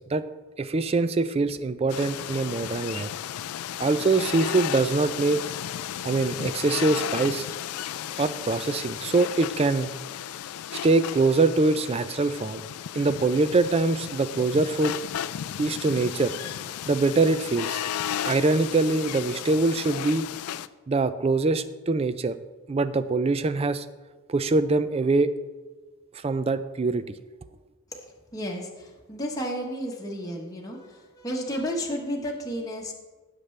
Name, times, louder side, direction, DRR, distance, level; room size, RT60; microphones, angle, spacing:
voice 1, 0.6-3.1 3.8-5.4 6.0-7.5 8.2-9.9 10.8-12.6 12.9-15.0 15.6-16.3 16.9-17.8 18.2-20.3 20.9-22.4 22.7-23.9 24.3-25.3 26.1-27.0, right 3 dB, 25° right, 13 dB, 0.4 m, -23 dB
sound 1, 1.9-20.7, left 10 dB, 85° left, 0.4 m, -34 dB
voice 2, 28.3-32.9, equal, 15° left, -2 dB, 1.1 m, -32 dB
16.0 x 6.7 x 3.2 m, 1.3 s
head